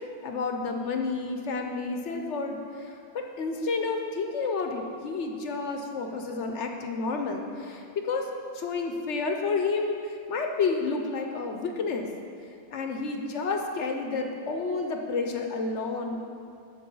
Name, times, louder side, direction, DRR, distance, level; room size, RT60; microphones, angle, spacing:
voice 1, 0.2-8.3 8.5-12.1 12.7-16.2, left 4 dB, 65° left, 3 dB, 0.9 m, -30 dB
8.0 x 6.9 x 5.4 m, 2.5 s
omnidirectional pair, 1.4 m